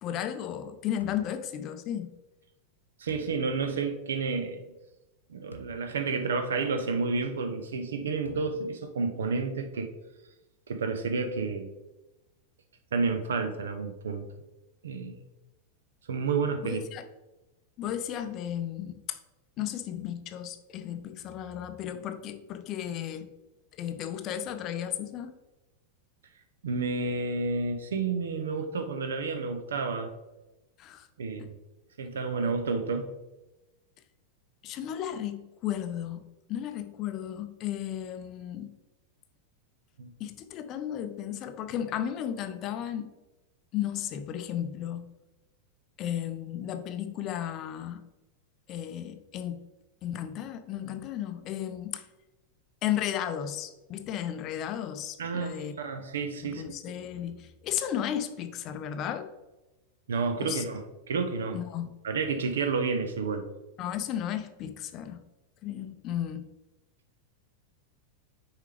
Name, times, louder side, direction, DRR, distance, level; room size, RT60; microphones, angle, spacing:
voice 1, 0.0-2.1 16.6-17.0 17.8-19.2 19.6-23.3 23.8-25.3 30.8-31.1 31.4-31.5 34.6-38.8 40.2-43.1 43.7-45.1 46.0-48.0 48.7-49.6 50.0-52.0 52.8-55.7 56.4-59.3 60.4-60.6 61.5-62.0 63.8-65.2 65.6-66.5, left 10 dB, 35° left, 10 dB, 0.5 m, -34 dB
sound 1, 1.0-1.3 3.1-3.4 5.5-5.8 6.4-6.5 8.2-8.7, right 1 dB, 80° left, 0.5 m, -48 dB
voice 2, 3.0-4.7 5.3-9.9 10.7-11.7 12.9-14.3 14.8-15.2 16.1-16.8 26.6-30.1 31.2-31.5 32.0-33.1 40.0-40.1 55.2-57.0 60.1-61.6 62.0-63.5, right 4 dB, 65° right, 7 dB, 0.7 m, -30 dB
6.6 x 4.8 x 3.3 m, 1.0 s
figure-of-eight pair, 90°, 0 cm